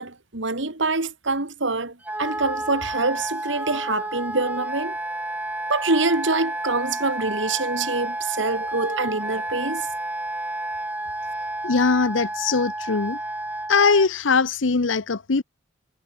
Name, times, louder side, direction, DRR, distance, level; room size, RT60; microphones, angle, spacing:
voice 1, 0.0-5.0 5.7-9.9, right 3 dB, 70° right, 2.4 m, -25 dB
Wind instrument woodwind instrument, 2.0-14.1, right 1 dB, 10° right, 3.9 m, -30 dB
voice 2, 11.6-13.2 13.7-15.4, left 4 dB, 80° left, 0.8 m, -21 dB
head